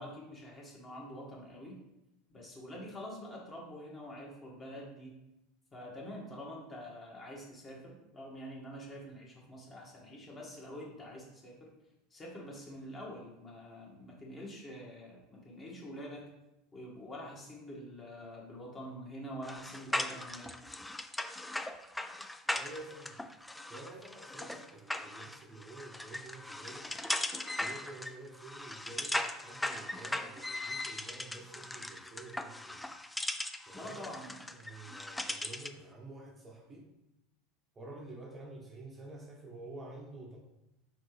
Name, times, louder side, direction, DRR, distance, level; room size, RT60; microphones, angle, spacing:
voice 1, 0.0-1.8 2.3-5.2 5.7-11.7 12.1-16.2 16.7-20.6 33.7-34.4, equal, 25° left, -2 dB, 1.6 m, -46 dB
sound 1, 19.4-35.8, left 1 dB, 5° left, 0.3 m, -39 dB
voice 2, 22.5-23.2 23.7-27.0 27.6-32.9 33.7-34.2 34.5-36.9 37.7-40.4, right 2 dB, 25° right, 0 dB, 0.8 m, -49 dB
4.3 x 3.7 x 3.3 m, 0.91 s
hypercardioid pair, 90°, 0 cm